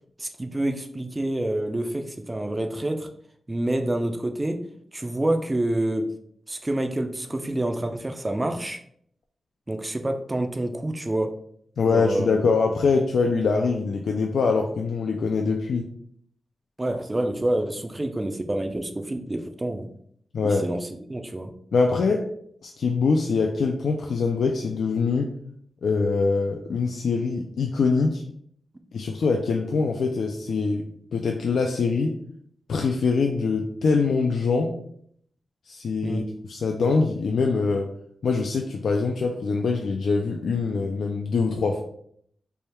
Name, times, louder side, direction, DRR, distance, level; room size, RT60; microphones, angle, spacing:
voice 1, 0.2-3.1 3.5-4.6 4.9-6.1 6.5-8.8 9.7-11.3 11.9-12.3 16.8-19.9 20.4-21.5 36.0-36.2, right 1 dB, 20° right, 6 dB, 0.4 m, -27 dB
voice 2, 11.8-15.9 20.3-20.7 21.7-22.3 22.6-25.3 25.8-28.2 28.9-32.2 32.7-34.8 35.7-36.2 36.5-37.9 38.2-41.8, left 4 dB, 75° left, 2 dB, 0.3 m, -23 dB
3.3 x 2.2 x 4.2 m, 0.66 s
wide cardioid pair, 150°, 0 cm